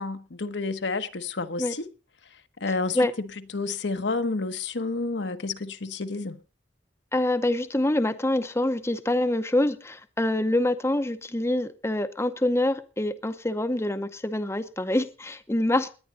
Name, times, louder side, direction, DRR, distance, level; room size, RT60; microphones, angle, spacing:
voice 1, 0.0-1.9 2.3-3.3 3.5-6.4, left 3 dB, 75° left, 1.1 m, -30 dB
voice 2, 7.1-15.9, left 1 dB, 15° left, 0.7 m, -25 dB
18.5 x 10.5 x 4.1 m
head